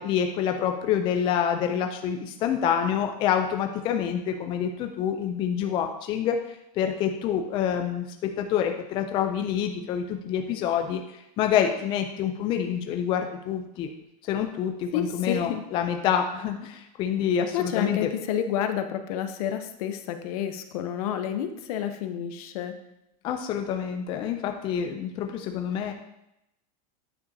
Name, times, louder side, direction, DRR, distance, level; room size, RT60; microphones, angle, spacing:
voice 1, 0.0-6.4 6.8-13.9 14.3-18.1 23.2-25.9, left 8 dB, 25° left, 5 dB, 0.3 m, -27 dB
voice 2, 14.9-15.6 17.5-22.8, left 9 dB, 60° left, 8 dB, 0.7 m, -29 dB
9.1 x 5.6 x 2.7 m, 0.85 s
supercardioid pair, 170°, 21 cm